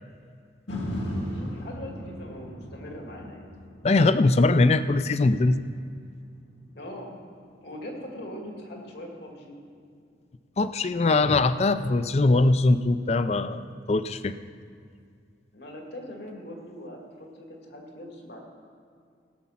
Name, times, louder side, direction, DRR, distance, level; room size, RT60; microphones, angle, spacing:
sound 1, 0.7-8.8 9.3-9.4, equal, 90° left, 2.1 m, -38 dB
voice 1, 1.3-3.5 6.8-7.1 7.6-9.6 15.5-18.4, left 1 dB, 70° left, 0 dB, 2.2 m, -41 dB
voice 2, 3.8-5.6 10.6-13.6 13.9-14.3, left 2 dB, 35° left, 13 dB, 0.4 m, -21 dB
17.0 x 7.3 x 5.7 m, 2.3 s
head